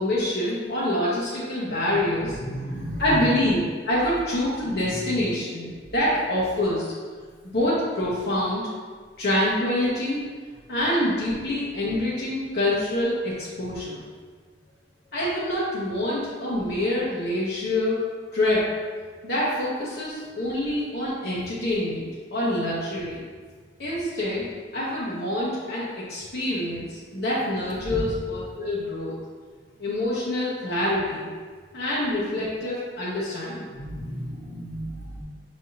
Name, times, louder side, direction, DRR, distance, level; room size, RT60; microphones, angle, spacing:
voice 1, 0.0-2.4 3.0-6.9 7.5-8.7 9.2-10.2 10.7-14.0 15.1-18.8 19.2-23.2 23.8-24.5 24.7-29.2 29.8-31.3 31.7-33.7, left 1 dB, 60° left, -8 dB, 0.9 m, -26 dB
voice 2, 1.6-3.4 4.8-5.5 5.7-5.9 20.2-20.3 27.8-28.2 32.0-32.1 33.7-35.2, equal, 80° left, -5 dB, 1.2 m, -34 dB
5.6 x 3.4 x 2.7 m, 1.6 s
head